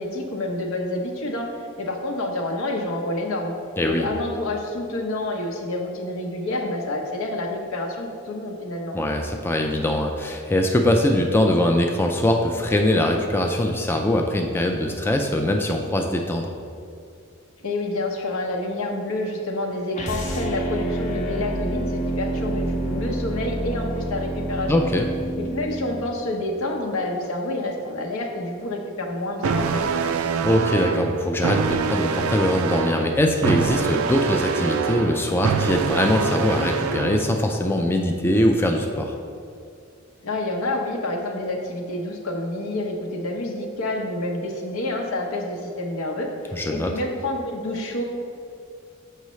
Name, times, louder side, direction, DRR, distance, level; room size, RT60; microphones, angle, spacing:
voice 1, 0.0-1.5 1.8-3.5 3.8-9.0 17.6-24.7 25.4-30.1 40.2-48.0, left 1 dB, 80° left, 1 dB, 0.8 m, -28 dB
voice 2, 3.8-4.1 8.9-16.6 24.7-25.1 30.4-39.2 46.5-46.9, left 1 dB, 10° left, 2 dB, 0.3 m, -22 dB
sound 1, 19.9-26.1, right 1 dB, 35° left, 0.7 m, -28 dB
sound 2, 29.4-37.4, right 5 dB, 75° right, 0.3 m, -25 dB
6.6 x 5.5 x 3.1 m, 2.4 s
head